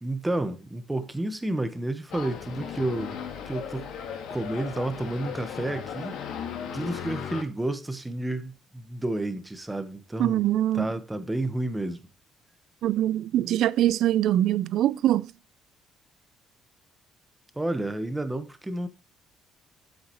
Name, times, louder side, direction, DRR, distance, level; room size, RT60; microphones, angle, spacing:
voice 1, 0.0-3.2 3.5-3.9 4.3-6.2 6.7-10.5 10.7-12.1 17.5-18.9, right 1 dB, 10° right, 1.2 m, -30 dB
sound 1, 2.1-7.4, left 8 dB, 75° left, 1.9 m, -36 dB
voice 2, 10.2-10.9 12.8-15.3, right 12 dB, 70° right, 0.4 m, -23 dB
8.3 x 8.0 x 3.1 m
cardioid pair, 115°, 0 cm